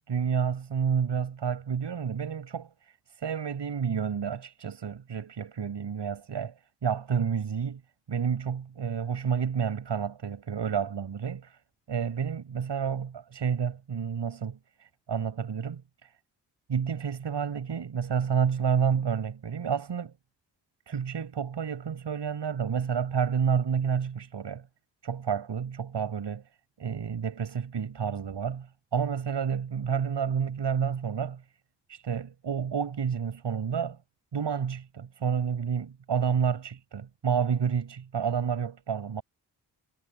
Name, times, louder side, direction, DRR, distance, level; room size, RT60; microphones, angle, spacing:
voice 1, 0.1-2.7 3.2-6.5 6.8-7.8 8.1-11.6 11.9-16.1 16.7-20.1 20.9-24.7 25.0-26.4 26.8-31.4 31.9-34.0 34.3-39.2, right 7 dB, 70° right, 7.8 m, -30 dB
cardioid pair, 50°, 44 cm